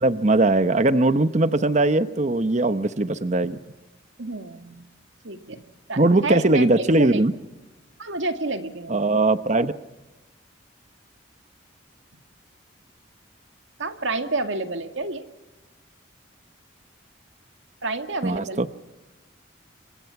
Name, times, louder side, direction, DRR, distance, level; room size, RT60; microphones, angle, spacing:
voice 1, 0.0-3.6 6.0-7.3 8.9-9.7 18.2-18.7, right 2 dB, 35° right, 11 dB, 0.9 m, -20 dB
voice 2, 4.2-4.9 5.2-5.6 5.9-7.2 8.0-9.0 13.8-15.3 17.8-18.6, right 3 dB, 75° right, 7 dB, 2.1 m, -29 dB
29.0 x 24.5 x 5.9 m, 1.1 s
head